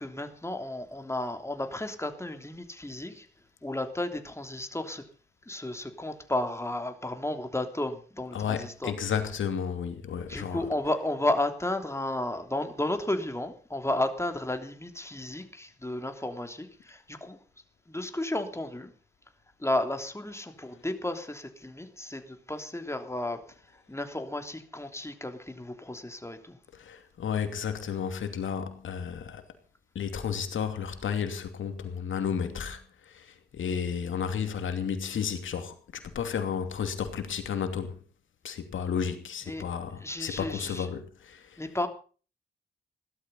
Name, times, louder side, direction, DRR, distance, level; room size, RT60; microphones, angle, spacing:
voice 1, 0.0-3.3 3.6-5.0 5.5-8.9 10.3-17.4 17.9-18.9 19.6-23.4 23.7-26.6 39.5-39.7 40.0-40.9 41.6-41.9, left 1 dB, 15° left, 3.2 m, -33 dB
voice 2, 8.3-10.7 26.7-29.4 29.9-38.0 38.4-41.6, left 7 dB, 75° left, 2.7 m, -32 dB
17.0 x 12.5 x 5.6 m
supercardioid pair, 45°, 20 cm